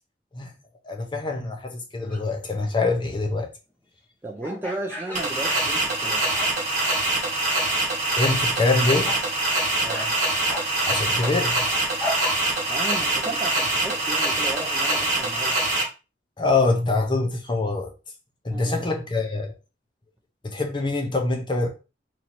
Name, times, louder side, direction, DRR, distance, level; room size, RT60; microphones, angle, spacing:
voice 1, 0.8-3.5 8.1-9.1 10.9-11.7 16.4-17.9 18.4-19.5 20.4-21.7, left 3 dB, 25° left, 0.7 m, -24 dB
sound 1, 2.1-2.4 4.4-6.1 6.3-6.8 7.2-7.7 8.1-8.4 9.0-9.3 9.9-10.1 10.5-12.7, left 1 dB, 10° left, 1.1 m, -35 dB
voice 2, 4.2-6.2 9.8-10.1 12.7-15.6 18.5-18.9, right 2 dB, 15° right, 0.5 m, -34 dB
sound 2, 5.2-15.8, right 2 dB, 45° right, 1.5 m, -24 dB
3.1 x 2.8 x 4.2 m
head